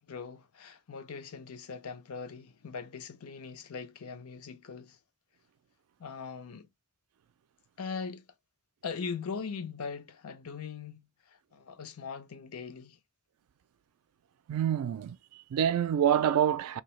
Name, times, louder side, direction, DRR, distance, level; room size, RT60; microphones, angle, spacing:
voice 1, 0.1-5.0 6.0-6.7 7.8-8.3 8.8-13.0, left 5 dB, 75° left, 0.5 m, -40 dB
voice 2, 14.5-16.8, right 9 dB, 80° right, 0.3 m, -27 dB
2.7 x 2.2 x 3.0 m
head